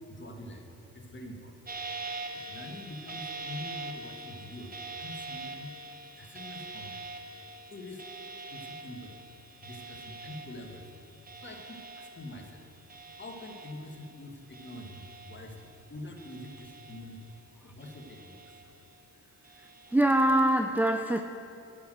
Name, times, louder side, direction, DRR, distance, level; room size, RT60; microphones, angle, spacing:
voice 1, 0.0-1.6 2.3-5.7 6.2-7.1 7.7-8.0 8.5-9.2 9.6-11.1 11.4-12.6 13.1-17.4 17.6-18.5, left 1 dB, 30° left, 2 dB, 1.6 m, -45 dB
sound 1, 1.7-14.2 14.5-15.7 16.2-17.4 17.8-18.9 19.4-20.0, right 3 dB, 25° right, 1.0 m, -44 dB
voice 2, 19.9-21.2, right 1 dB, 5° right, 6 dB, 0.4 m, -23 dB
8.3 x 6.4 x 7.8 m, 2.7 s
supercardioid pair, 60°, 35 cm